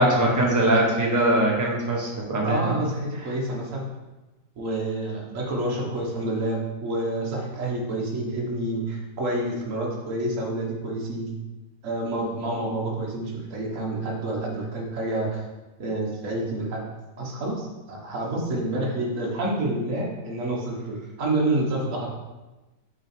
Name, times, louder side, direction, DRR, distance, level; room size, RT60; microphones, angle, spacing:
voice 1, 0.0-2.8, right 1 dB, 15° right, -2 dB, 0.9 m, -21 dB
voice 2, 2.4-3.8 4.6-11.3 11.8-15.4 15.8-16.8 17.2-22.1, right 1 dB, 50° right, -2 dB, 1.6 m, -28 dB
6.3 x 4.1 x 4.5 m, 1.1 s
omnidirectional pair, 1.8 m